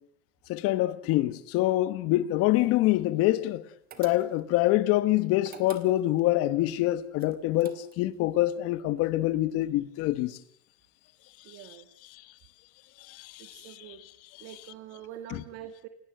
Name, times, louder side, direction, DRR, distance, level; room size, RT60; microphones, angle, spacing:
voice 1, 0.5-3.6 4.0-10.4 11.5-11.7 12.1-12.2 13.0-14.0 15.3-15.4, left 16 dB, 45° left, 1.4 m, -26 dB
sound 1, 3.9-4.6 5.4-6.3 7.2-8.2, right 9 dB, 30° right, 2.3 m, -48 dB
voice 2, 11.4-11.9 13.4-14.0 14.4-15.9, right 11 dB, 45° right, 2.1 m, -45 dB
29.0 x 18.0 x 7.9 m
supercardioid pair, 165°, 32 cm